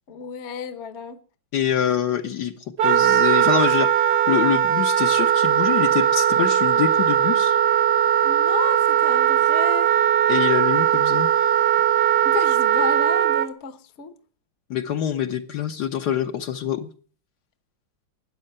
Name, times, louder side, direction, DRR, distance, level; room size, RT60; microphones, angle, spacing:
voice 1, 0.1-1.2 8.2-9.9 12.2-14.1, left 6 dB, 45° left, 1.1 m, -32 dB
voice 2, 1.5-2.5 2.8-7.6 10.3-11.3 14.7-16.9, left 9 dB, 65° left, 1.3 m, -25 dB
Wind instrument woodwind instrument, 2.8-13.5, right 10 dB, 60° right, 1.5 m, -19 dB
13.0 x 9.6 x 6.6 m
omnidirectional pair, 2.1 m